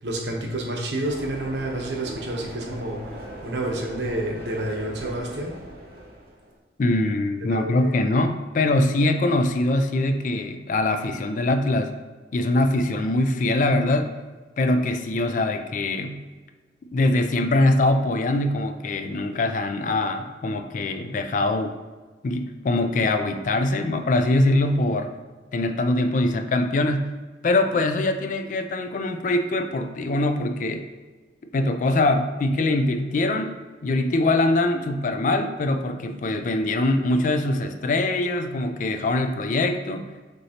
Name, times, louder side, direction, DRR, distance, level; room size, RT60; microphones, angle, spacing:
voice 1, 0.0-5.6 7.5-8.0, right 1 dB, 80° right, 0 dB, 0.9 m, -29 dB
sound 1, 1.0-6.6, right 1 dB, 60° right, 0.7 m, -40 dB
voice 2, 6.8-12.0 12.3-14.1 14.6-16.2 16.9-21.8 22.2-25.1 25.5-27.1 27.4-30.8 31.5-33.6 33.8-40.1, left 2 dB, 45° left, 8 dB, 0.3 m, -23 dB
6.1 x 2.8 x 2.8 m, 1.3 s
head